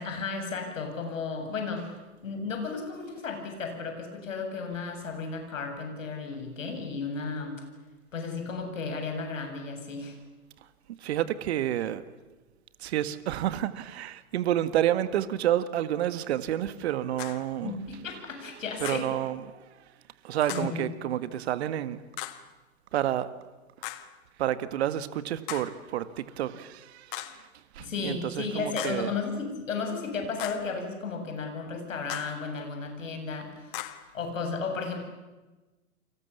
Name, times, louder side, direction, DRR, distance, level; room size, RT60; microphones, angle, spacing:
voice 1, 0.0-1.9 2.2-7.6 8.1-10.2 17.6-19.1 20.5-20.8 27.8-35.0, left 4 dB, 65° left, 4 dB, 7.9 m, -34 dB
voice 2, 11.0-12.0 12.8-17.7 18.8-19.7 20.2-22.0 22.9-23.3 24.4-27.5 27.7-29.1, right 12 dB, 50° right, 13 dB, 1.8 m, -29 dB
sound 1, 17.2-17.5 18.8-19.2 20.5-20.8 22.2-22.5 23.8-24.2 25.5-25.8 27.1-27.5 28.8-29.1 30.4-30.7 32.1-32.4 33.7-34.1, left 16 dB, 40° left, 1.7 m, -39 dB
29.5 x 25.0 x 7.3 m, 1.2 s
figure-of-eight pair, 110°, 41 cm